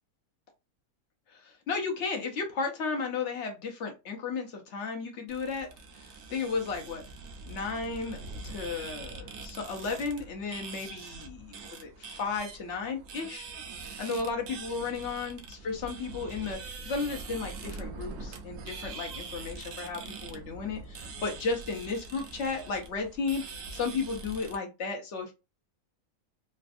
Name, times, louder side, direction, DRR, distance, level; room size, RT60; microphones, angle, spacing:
voice 1, 1.7-5.7 6.3-7.0 7.5-13.4 14.0-16.6 16.9-23.4 23.7-25.3, left 4 dB, 60° left, 3 dB, 0.8 m, -34 dB
sound 1, 5.3-24.6, right 3 dB, 70° right, 0.9 m, -43 dB
3.3 x 2.2 x 2.5 m, 0.27 s
omnidirectional pair, 1.6 m